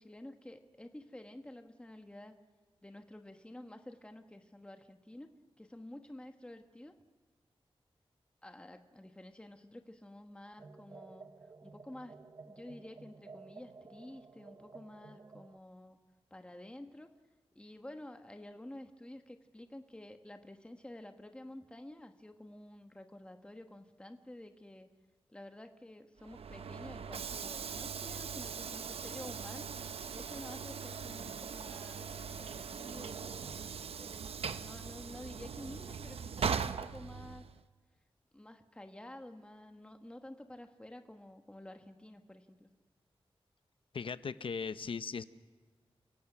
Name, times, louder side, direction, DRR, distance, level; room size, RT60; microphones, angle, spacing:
voice 1, 0.0-2.3 2.8-6.9 8.4-11.3 11.6-12.2 12.4-16.0 16.3-17.1 17.5-24.9 25.3-29.7 30.1-32.1 32.4-34.2 34.5-37.5 38.3-42.7, left 1 dB, 10° left, 6 dB, 1.3 m, -50 dB
sound 1, 10.6-15.6, right 4 dB, 45° right, 0.8 m, -54 dB
Train / Sliding door, 26.2-37.6, right 6 dB, 85° right, 0.7 m, -40 dB
voice 2, 43.9-45.2, left 5 dB, 65° left, 13 dB, 0.8 m, -38 dB
30.0 x 17.0 x 6.1 m, 1.4 s
wide cardioid pair, 125°, 10 cm